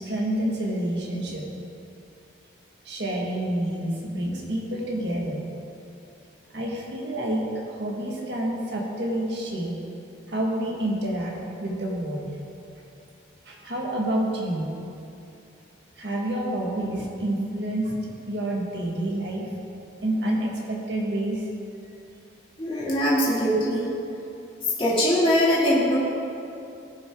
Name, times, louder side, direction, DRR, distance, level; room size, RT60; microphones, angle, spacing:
voice 1, 0.0-1.4 2.9-5.4 6.5-9.8 10.3-12.3 13.5-14.7 16.0-19.5 20.0-21.4, right 1 dB, 65° right, -2 dB, 1.7 m, -28 dB
voice 2, 22.6-23.9 24.8-26.0, equal, 30° left, -8 dB, 2.4 m, -22 dB
17.0 x 6.0 x 3.7 m, 2.7 s
head